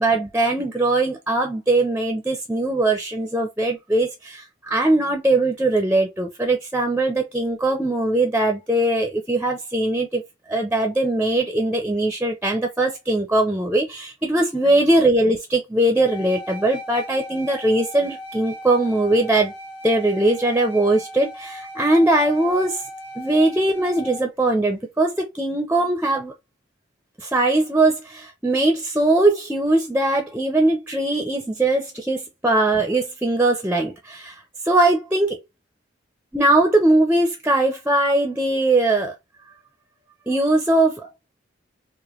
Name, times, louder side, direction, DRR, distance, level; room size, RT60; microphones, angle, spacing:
voice 1, 0.0-10.2 10.5-19.5 19.8-22.8 23.2-26.3 27.2-34.3 34.6-35.4 36.3-39.1 40.3-41.0, right 2 dB, 10° right, 0.6 m, -20 dB
sound 1, 15.9-24.2, left 1 dB, 50° left, 2.0 m, -37 dB
4.9 x 2.2 x 3.0 m
head